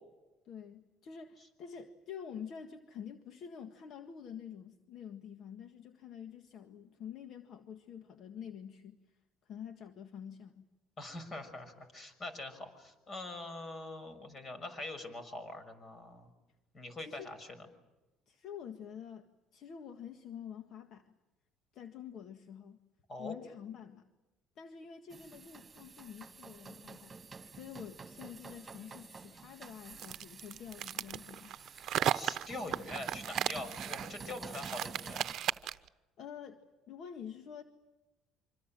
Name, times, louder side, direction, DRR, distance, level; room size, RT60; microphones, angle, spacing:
voice 1, 0.5-10.6 17.0-17.3 18.3-21.2 21.7-22.8 23.2-24.1 24.6-27.2 27.5-31.6 36.2-37.6, left 8 dB, 55° left, 7 dB, 1.7 m, -48 dB
voice 2, 11.0-16.3 16.7-17.7 23.1-23.3 32.1-35.3, left 2 dB, 35° left, 10 dB, 6.3 m, -44 dB
sound 1, 25.1-35.3, right 5 dB, 25° right, 2.6 m, -50 dB
sound 2, 30.0-35.9, right 11 dB, 55° right, 0.9 m, -35 dB
26.5 x 26.0 x 7.6 m, 1.1 s
cardioid pair, 100°, 0 cm